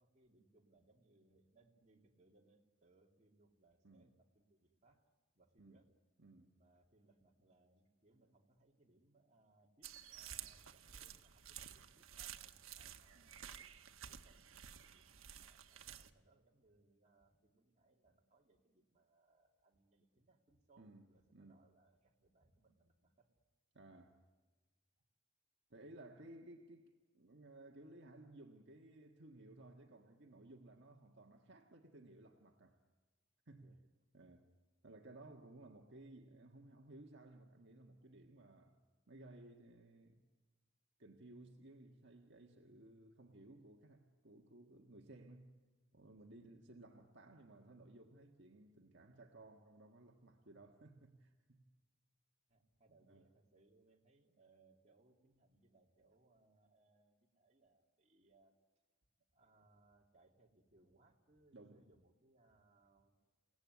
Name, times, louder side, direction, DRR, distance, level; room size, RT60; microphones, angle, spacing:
voice 1, 0.0-5.9 6.6-13.5 13.8-23.3 25.0-25.1 33.6-33.8 46.1-46.4 52.5-58.6 59.3-63.2, right 2 dB, 35° right, 2.7 m, -72 dB
voice 2, 6.2-6.6 13.2-13.3 20.8-21.6 23.7-24.2 25.7-32.8 33.5-33.8 34.1-34.5 34.8-38.8 39.1-40.3 41.0-45.6 45.9-51.7 53.1-53.3 61.5-61.8, right 2 dB, 60° right, 1.6 m, -59 dB
sound 1, 9.8-16.1, right 9 dB, 85° right, 1.2 m, -53 dB
29.5 x 18.0 x 9.6 m
head